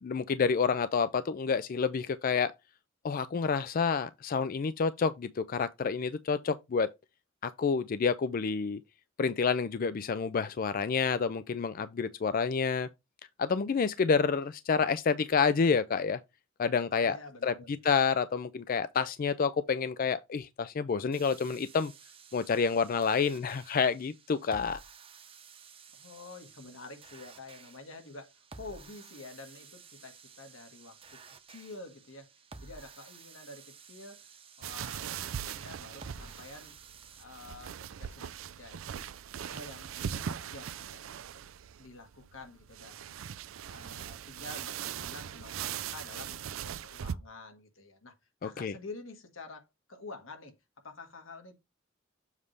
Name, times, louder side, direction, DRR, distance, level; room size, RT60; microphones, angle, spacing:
voice 1, 0.0-2.5 3.0-6.9 7.4-8.8 9.2-12.9 13.4-16.2 16.6-17.5 17.8-21.9 22.3-24.8 48.4-48.7, left 5 dB, 45° left, 0.4 m, -29 dB
voice 2, 17.0-17.8 25.9-31.2 31.5-32.3 32.6-34.3 34.6-36.7 37.2-39.1 39.4-41.2 41.8-43.3 43.7-48.1 48.4-50.5 50.8-51.6, left 3 dB, 85° left, 1.6 m, -48 dB
sound 1, 21.1-37.2, right 5 dB, 30° right, 0.8 m, -53 dB
sound 2, 34.6-47.2, right 8 dB, 90° right, 0.4 m, -40 dB
7.3 x 3.3 x 5.2 m
head